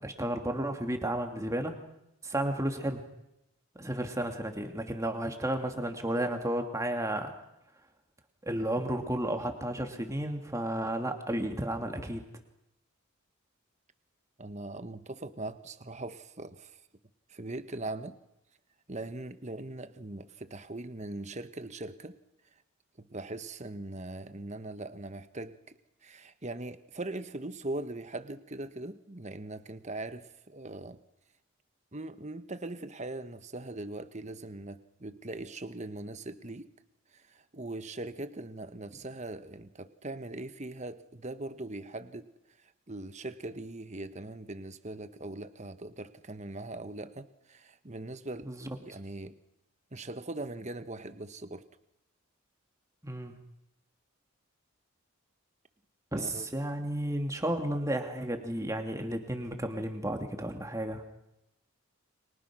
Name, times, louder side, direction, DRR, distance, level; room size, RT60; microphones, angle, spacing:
voice 1, 0.0-1.8 2.2-3.0 3.8-7.3 8.4-12.2 48.4-48.7 53.0-53.4 56.1-61.0, right 1 dB, 15° right, 4 dB, 2.6 m, -32 dB
voice 2, 14.4-16.8 17.3-18.2 18.9-22.2 23.0-25.6 26.0-31.0 31.9-36.7 37.1-42.3 42.6-48.5 48.8-49.4 49.9-51.7 56.1-56.5, right 2 dB, 30° right, 10 dB, 1.3 m, -40 dB
30.0 x 24.5 x 6.3 m, 0.88 s
head